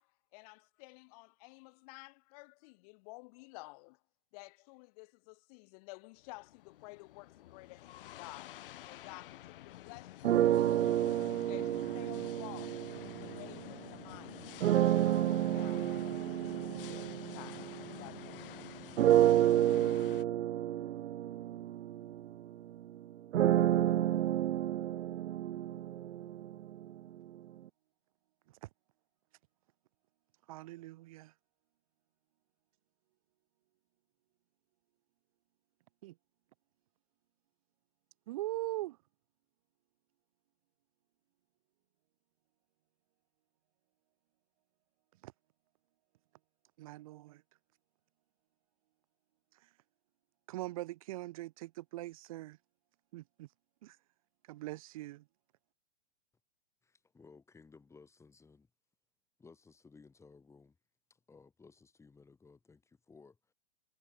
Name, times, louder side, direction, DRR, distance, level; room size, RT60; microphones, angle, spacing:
voice 1, 0.0-4.0 4.3-11.0 11.5-12.9 13.2-14.5 14.8-18.7, left 28 dB, 30° left, 1.6 m, -53 dB
sound 1, 6.2-20.2, left 14 dB, 50° left, 0.7 m, -50 dB
sound 2, 10.2-13.8 14.6-18.4 19.0-26.9, right 12 dB, 75° right, 0.6 m, -30 dB
voice 2, 30.5-31.3 36.0-36.1 38.3-39.0 45.2-45.3 46.8-47.4 50.5-52.6 53.1-53.5 53.8-54.0 54.5-55.2, right 17 dB, 30° right, 0.6 m, -41 dB
voice 3, 56.8-58.7 59.4-60.8 61.1-63.5, left 4 dB, 10° left, 7.4 m, -59 dB
hypercardioid pair, 150°, 35 cm